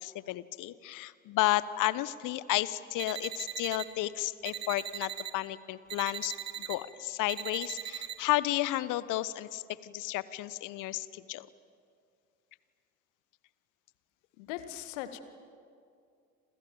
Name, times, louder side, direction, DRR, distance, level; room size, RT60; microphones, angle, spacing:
voice 1, 0.0-11.5, left 16 dB, 50° left, 18 dB, 1.1 m, -32 dB
sound 1, 3.0-3.9 4.4-5.3 5.9-6.8 7.3-8.1, right 9 dB, 40° right, 2.9 m, -39 dB
voice 2, 14.4-15.2, left 12 dB, 65° left, 10 dB, 2.0 m, -39 dB
29.5 x 27.5 x 7.2 m, 2.4 s
figure-of-eight pair, 60°, 40 cm